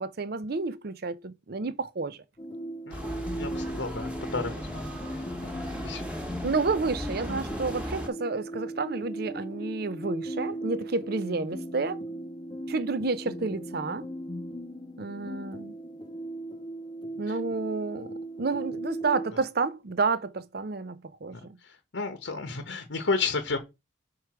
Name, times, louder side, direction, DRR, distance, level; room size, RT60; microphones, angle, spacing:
voice 1, 0.0-2.2 6.4-12.0 12.7-14.1 15.0-15.7 17.2-21.6, right 4 dB, 55° right, 0.6 m, -30 dB
sound 1, 2.4-19.3, right 1 dB, 20° left, 0.4 m, -38 dB
voice 2, 2.9-6.0 17.3-17.4 19.3-19.4 21.3-23.6, left 4 dB, 70° left, 1.0 m, -33 dB
sound 2, 2.9-8.1, equal, 5° right, 1.2 m, -37 dB
4.7 x 4.7 x 5.9 m
head